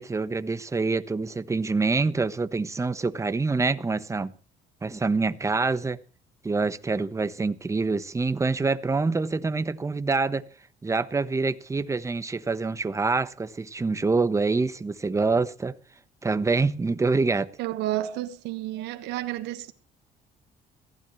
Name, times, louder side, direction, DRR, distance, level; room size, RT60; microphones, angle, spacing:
voice 1, 0.0-4.3 4.8-6.0 6.4-10.4 10.8-15.7 16.2-17.5, right 3 dB, 15° right, 1.1 m, -26 dB
voice 2, 17.6-19.7, right 14 dB, 90° right, 1.5 m, -31 dB
22.5 x 15.5 x 3.2 m
cardioid pair, 110°, 17 cm